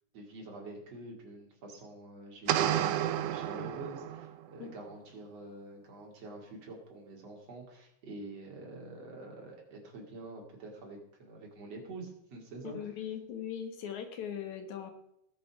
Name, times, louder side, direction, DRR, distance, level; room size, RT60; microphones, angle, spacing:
voice 1, 0.1-12.8, right 2 dB, 55° right, 0 dB, 3.8 m, -46 dB
sound 1, 2.5-4.4, right 11 dB, 80° right, 2.0 m, -31 dB
voice 2, 12.6-14.9, left 8 dB, 75° left, 6 dB, 2.8 m, -39 dB
19.0 x 6.9 x 5.0 m, 0.77 s
omnidirectional pair, 3.4 m